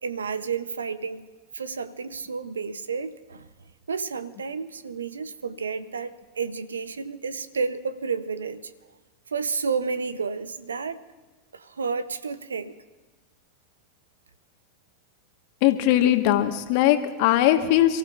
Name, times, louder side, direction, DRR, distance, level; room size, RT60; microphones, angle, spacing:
voice 1, 0.0-1.3 1.5-3.5 3.9-8.7 9.3-11.0 11.5-12.8, right 5 dB, 85° right, 0.8 m, -31 dB
voice 2, 15.6-18.0, left 12 dB, 60° left, 1.5 m, -20 dB
29.0 x 15.0 x 2.6 m
hypercardioid pair, 90°, 0 cm